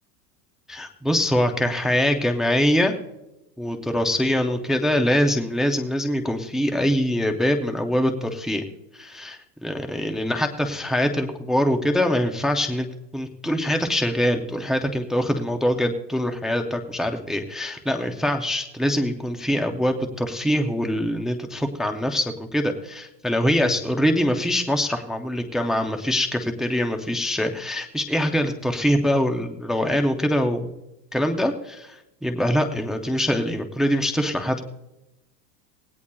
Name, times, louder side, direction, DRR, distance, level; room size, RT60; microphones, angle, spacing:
voice 1, 0.7-2.9 3.6-8.6 8.9-12.9 13.1-30.7 31.1-32.0 32.2-34.6, equal, ahead, 5 dB, 0.3 m, -23 dB
18.5 x 17.0 x 2.2 m, 0.95 s
supercardioid pair, 140°, 48 cm